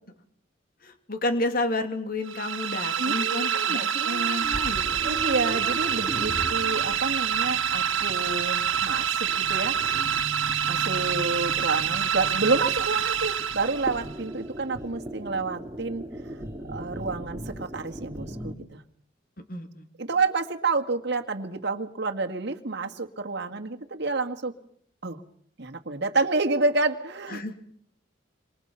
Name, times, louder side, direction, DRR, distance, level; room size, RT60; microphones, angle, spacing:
voice 1, 0.8-5.0 19.5-19.9 27.3-27.6, left 2 dB, 45° left, 7 dB, 3.1 m, -31 dB
sound 1, 2.3-14.1, right 8 dB, 85° right, 1.6 m, -27 dB
voice 2, 3.0-4.4 5.0-9.8 10.7-16.0 16.7-18.8 20.0-24.5 25.0-25.2 25.6-27.4, right 3 dB, 60° right, 5 dB, 1.9 m, -29 dB
sound 2, 4.4-18.5, right 1 dB, 15° right, 3.1 m, -39 dB
27.0 x 25.0 x 5.8 m, 0.64 s
head